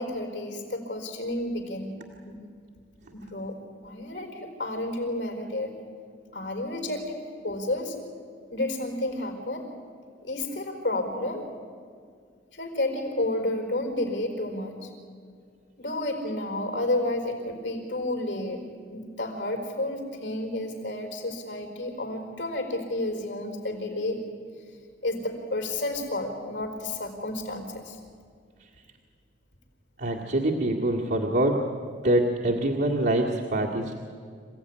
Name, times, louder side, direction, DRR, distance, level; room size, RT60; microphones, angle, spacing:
voice 1, 0.0-1.9 2.2-2.4 3.1-3.6 3.8-5.7 6.3-8.0 8.5-9.7 10.2-11.4 12.5-14.9 15.8-18.6 18.9-24.2 25.0-28.0, left 1 dB, 75° left, 4 dB, 5.0 m, -31 dB
voice 2, 30.0-31.7 32.0-34.0, right 1 dB, 65° right, -3 dB, 2.0 m, -25 dB
27.0 x 16.0 x 9.9 m, 2.1 s
head